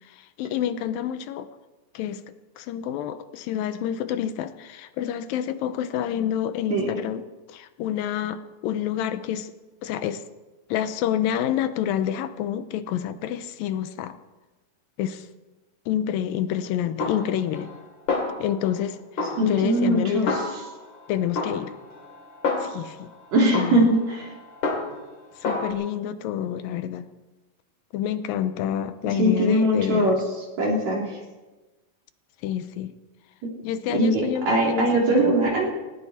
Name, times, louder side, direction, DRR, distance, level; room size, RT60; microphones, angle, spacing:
voice 1, 0.1-1.5 1.9-2.2 2.6-9.5 9.8-10.2 10.7-14.2 15.0-15.3 15.9-17.7 18.4-19.0 19.4-20.4 21.1-21.7 22.6-23.1 23.5-23.9 25.4-27.1 27.9-30.2 32.4-32.9 33.6-35.3, left 10 dB, 85° left, 11 dB, 2.6 m, -28 dB
Snare drum, 17.0-17.8 18.1-18.8 19.2-21.0 21.4-23.0 23.5-25.1 25.4-25.7, left 3 dB, 40° left, 3.0 m, -29 dB
voice 2, 19.4-20.3 23.3-24.2 29.0-30.2 30.6-31.0 33.4-33.5 33.9-35.7, right 1 dB, 55° right, -1 dB, 4.4 m, -21 dB
18.5 x 18.5 x 4.3 m, 1.2 s
omnidirectional pair, 4.0 m